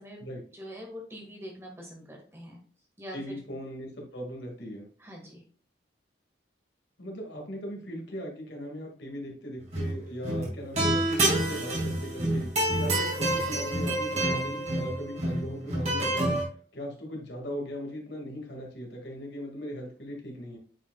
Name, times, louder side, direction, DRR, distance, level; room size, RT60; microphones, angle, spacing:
voice 1, 0.5-2.6 3.0-3.2 5.0-5.4, equal, 15° right, 0 dB, 1.4 m, -43 dB
voice 2, 3.1-4.9 7.0-16.4 16.7-20.6, equal, 75° left, 0 dB, 2.0 m, -39 dB
sound 1, 9.6-10.0 10.2-16.4, right 1 dB, 35° right, 1.9 m, -28 dB
8.8 x 5.0 x 2.3 m, 0.43 s
head